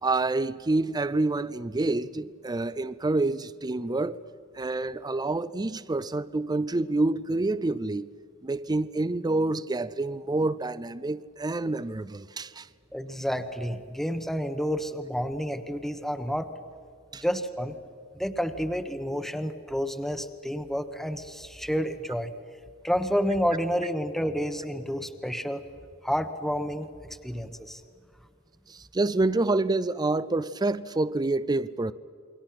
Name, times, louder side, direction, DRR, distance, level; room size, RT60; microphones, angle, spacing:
voice 1, 0.0-4.2 4.5-8.1 8.4-12.7 17.1-17.2 28.7-31.9, right 2 dB, 20° right, 0.5 m, -27 dB
voice 2, 12.9-16.5 17.2-17.8 18.1-22.3 22.8-25.6 26.0-27.8, equal, ahead, 1.1 m, -30 dB
28.5 x 23.0 x 5.9 m
head